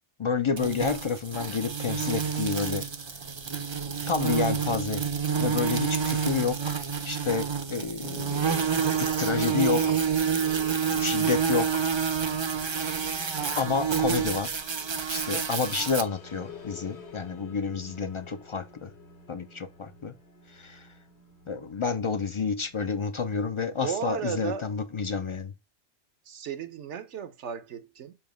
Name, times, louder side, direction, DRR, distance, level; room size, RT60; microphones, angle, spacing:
voice 1, 0.2-2.9 4.1-5.1 5.4-6.8 7.0-8.5 9.0-10.0 10.9-11.9 13.6-14.6 15.1-18.9 19.3-20.1 20.5-20.9 21.5-25.5, left 5 dB, 45° left, 0.4 m, -29 dB
sound 1, 0.6-16.0, right 6 dB, 35° right, 0.5 m, -28 dB
sound 2, 8.0-24.2, left 4 dB, 70° left, 1.6 m, -50 dB
voice 2, 23.8-24.7 26.3-28.2, right 7 dB, 80° right, 1.1 m, -34 dB
7.1 x 2.9 x 5.1 m
omnidirectional pair, 1.2 m